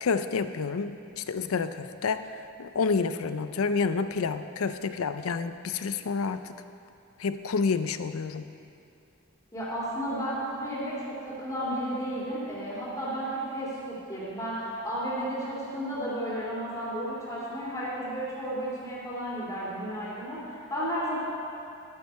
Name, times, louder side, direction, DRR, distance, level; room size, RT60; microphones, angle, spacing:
voice 1, 0.0-6.5 7.2-8.5, left 5 dB, 85° left, 11 dB, 0.5 m, -29 dB
voice 2, 9.5-21.2, equal, 15° left, -8 dB, 2.6 m, -33 dB
11.5 x 9.1 x 4.7 m, 2.7 s
head